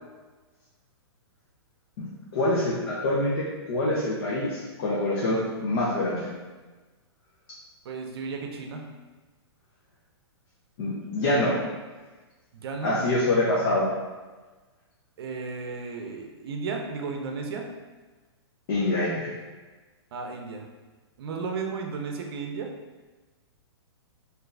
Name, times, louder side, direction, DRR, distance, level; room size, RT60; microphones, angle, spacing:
voice 1, 2.3-6.3 10.8-11.5 12.8-13.9 18.7-19.3, left 1 dB, 50° left, -7 dB, 0.9 m, -25 dB
voice 2, 7.8-8.8 12.5-13.0 15.2-17.7 20.1-20.7 21.2-22.7, right 4 dB, 60° right, 2 dB, 0.6 m, -34 dB
3.8 x 2.7 x 2.6 m, 1.3 s
hypercardioid pair, 140°, 14 cm